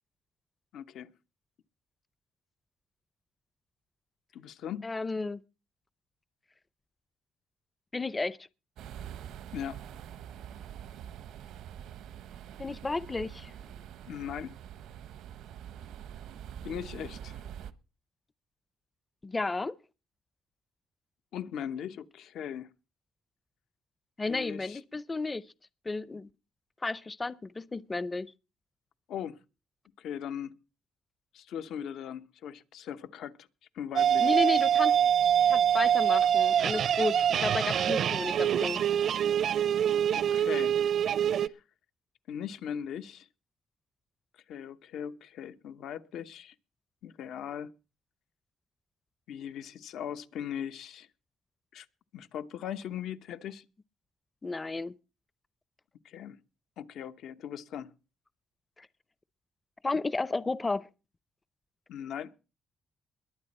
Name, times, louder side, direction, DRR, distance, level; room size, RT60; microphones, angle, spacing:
voice 1, 0.7-1.1 4.3-4.9 9.5-9.8 14.1-14.5 16.6-17.4 21.3-22.7 24.3-24.8 29.1-29.4 30.0-30.6 31.3-33.5 33.7-34.3 40.1-40.8 41.3-41.6 42.3-43.3 44.5-46.5 47.0-47.7 49.3-51.1 51.7-51.9 52.1-53.6 56.0-56.4 56.8-57.9 61.9-62.3, left 9 dB, 80° left, 1.0 m, -39 dB
voice 2, 4.8-5.4 7.9-8.4 12.6-13.5 19.2-19.7 24.2-25.5 25.9-26.3 26.8-28.3 34.2-35.0 35.5-38.8 54.4-54.9 58.8-58.9 59.8-60.9, left 3 dB, 25° left, 0.6 m, -32 dB
sound 1, 8.8-17.7, right 9 dB, 85° right, 1.0 m, -45 dB
sound 2, 34.0-41.5, right 9 dB, 65° right, 0.6 m, -25 dB
21.5 x 8.7 x 4.2 m
cardioid pair, 90°, 0 cm